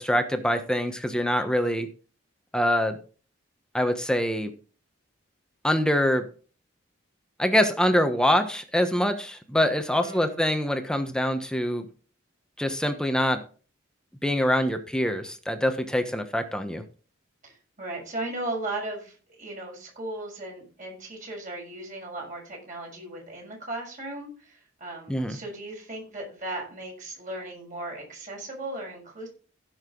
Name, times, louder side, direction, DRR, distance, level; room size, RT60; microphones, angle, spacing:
voice 1, 0.0-1.9 2.5-3.0 3.7-4.5 5.6-6.3 7.4-11.9 12.6-13.4 14.2-16.8 25.1-25.4, equal, 5° left, 7 dB, 1.2 m, -24 dB
voice 2, 10.0-10.4 17.4-29.3, right 2 dB, 40° right, -1 dB, 6.4 m, -37 dB
16.0 x 6.6 x 4.0 m, 0.38 s
head